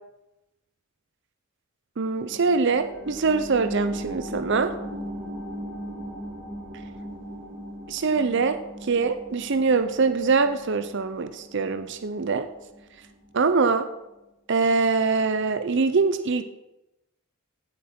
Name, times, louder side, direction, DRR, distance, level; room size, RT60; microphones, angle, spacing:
voice 1, 2.0-4.7 7.9-12.5 13.3-13.8 14.5-16.4, right 4 dB, 60° right, 10 dB, 0.6 m, -23 dB
sound 1, 2.2-13.3 13.7-13.8, equal, 45° right, 4.0 m, -38 dB
16.0 x 7.6 x 4.4 m, 0.96 s
head